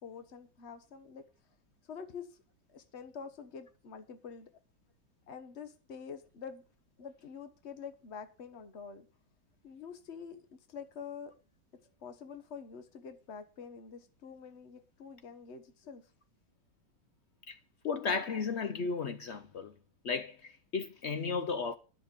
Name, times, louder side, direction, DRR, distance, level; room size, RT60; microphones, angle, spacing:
voice 1, 0.0-1.2 1.8-2.3 2.7-4.5 5.3-6.6 7.0-9.1 9.6-10.4 10.7-11.3 12.0-16.0, left 6 dB, 40° left, 1.4 m, -46 dB
voice 2, 17.8-19.7 20.0-21.7, left 5 dB, 80° left, 0.6 m, -34 dB
11.0 x 6.8 x 7.0 m
omnidirectional pair, 2.1 m